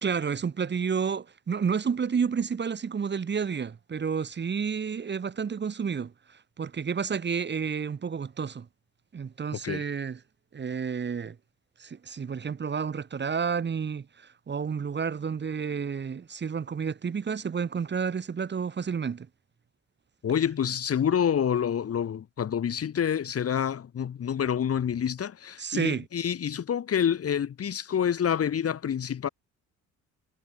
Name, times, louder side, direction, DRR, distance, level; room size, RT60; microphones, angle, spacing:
voice 1, 0.0-8.7 9.1-10.2 10.5-11.4 11.8-19.3 25.6-26.0, right 6 dB, 35° right, 1.5 m, -30 dB
voice 2, 9.5-9.8 20.2-29.3, left 8 dB, 50° left, 2.1 m, -27 dB
cardioid pair, 90°, 30 cm